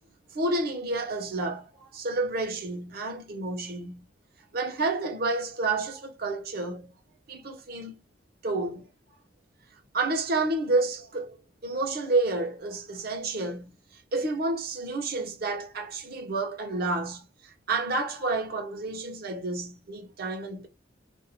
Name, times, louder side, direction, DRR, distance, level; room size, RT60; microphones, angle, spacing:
voice 1, 0.3-4.1 4.5-7.0 7.3-7.9 8.4-8.9 9.9-11.4 11.6-13.7 14.1-17.3 17.7-20.7, right 2 dB, 55° right, 0.7 m, -30 dB
2.5 x 2.0 x 2.7 m
head